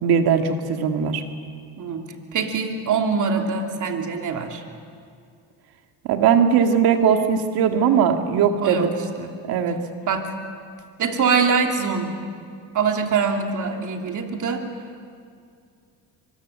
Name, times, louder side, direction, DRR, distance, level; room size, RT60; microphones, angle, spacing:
voice 1, 0.0-1.2 6.0-8.9 9.5-9.8, right 7 dB, 80° right, 5 dB, 2.0 m, -19 dB
voice 2, 2.3-4.6 8.6-8.9 9.2-9.3 10.1-10.3 11.0-12.1 12.7-14.6, right 5 dB, 55° right, 3 dB, 3.0 m, -23 dB
25.0 x 22.5 x 7.4 m, 2.3 s
cardioid pair, 90°, 36 cm